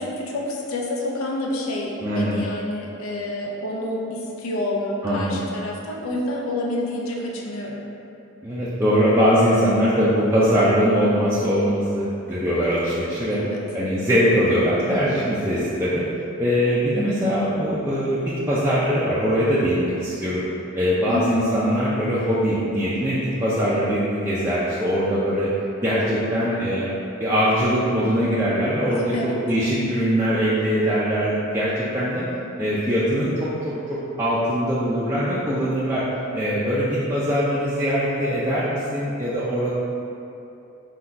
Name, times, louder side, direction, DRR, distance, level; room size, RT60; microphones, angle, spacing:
voice 1, 0.0-7.8 13.3-13.6 21.1-21.4 28.9-29.4, left 1 dB, 75° left, -2 dB, 0.5 m, -28 dB
voice 2, 2.0-2.5 5.0-5.4 8.4-13.4 13.7-16.0 16.4-20.4 20.7-25.5 25.8-26.9 27.2-32.2 32.6-36.0 36.3-39.7, equal, 10° right, -10 dB, 0.4 m, -22 dB
3.8 x 2.3 x 4.3 m, 2.8 s
head